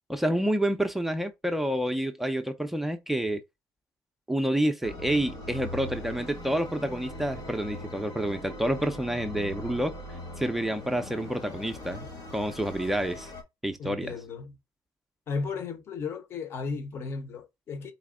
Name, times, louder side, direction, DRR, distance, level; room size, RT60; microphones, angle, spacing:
voice 1, 0.1-3.4 4.3-10.0 10.4-13.3 13.6-14.1, right 1 dB, 5° right, 0.4 m, -28 dB
sound 1, 4.8-13.4, left 1 dB, 85° left, 1.9 m, -41 dB
voice 2, 13.8-14.6 15.3-17.9, left 4 dB, 35° left, 0.7 m, -35 dB
4.1 x 3.1 x 3.6 m
cardioid pair, 180°, 7 cm